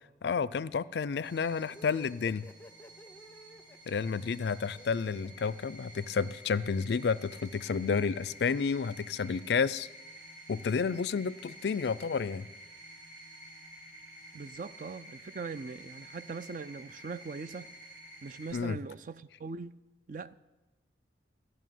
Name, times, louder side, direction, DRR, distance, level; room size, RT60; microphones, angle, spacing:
voice 1, 0.2-2.4 3.9-9.9 10.5-12.5 18.5-18.8, left 5 dB, 70° left, 0.4 m, -31 dB
sound 1, 1.2-18.5, right 1 dB, 70° right, 5.3 m, -51 dB
sound 2, 1.7-6.3, left 1 dB, 10° left, 0.5 m, -52 dB
voice 2, 14.3-17.7 18.2-19.8 20.1-20.3, right 4 dB, 45° right, 0.4 m, -41 dB
14.5 x 6.4 x 9.2 m
head